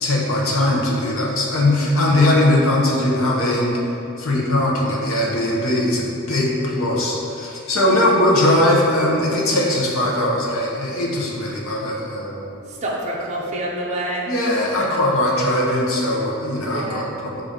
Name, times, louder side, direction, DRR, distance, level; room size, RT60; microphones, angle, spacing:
voice 1, 0.0-3.8 4.2-12.5 14.3-17.4, left 1 dB, 70° left, -3 dB, 0.8 m, -20 dB
voice 2, 7.8-8.1 12.7-14.3 16.6-17.0, right 1 dB, 30° right, -4 dB, 0.4 m, -28 dB
5.5 x 2.5 x 3.6 m, 2.9 s
head